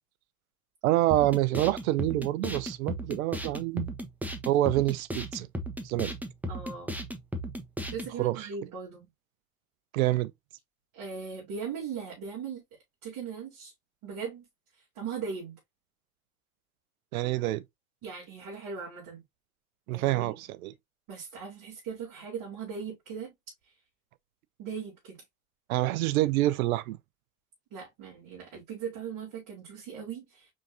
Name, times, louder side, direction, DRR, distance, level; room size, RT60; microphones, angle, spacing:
voice 1, 0.8-3.9 4.5-5.5 5.8-6.1 8.2-8.5 9.9-10.3 17.1-17.6 19.9-20.7 25.7-27.0, right 16 dB, 80° right, 0.6 m, -27 dB
sound 1, 1.1-8.1, equal, 5° right, 1.1 m, -36 dB
voice 2, 6.5-6.9 7.9-9.1 10.9-12.6 13.0-13.7 14.0-14.5 14.9-15.6 18.0-19.2 19.9-20.4 21.1-23.3 24.6-25.2 27.7-30.5, right 6 dB, 50° right, 2.9 m, -39 dB
5.1 x 3.7 x 2.6 m
hypercardioid pair, 85°, 41 cm